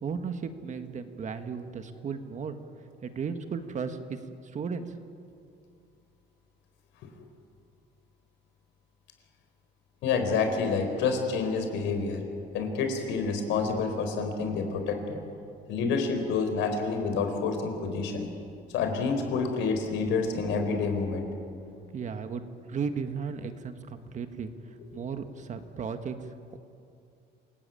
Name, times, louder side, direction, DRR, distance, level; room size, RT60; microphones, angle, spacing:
voice 1, 0.0-2.6 3.0-4.2 4.5-4.9 21.9-24.5 24.9-26.2, right 6 dB, 40° right, 8 dB, 1.6 m, -35 dB
voice 2, 10.0-12.2 12.5-15.2 15.7-18.3 18.7-21.3 24.9-25.0, left 4 dB, 85° left, 5 dB, 4.5 m, -28 dB
27.5 x 18.0 x 9.2 m, 2.5 s
cardioid pair, 135°, 19 cm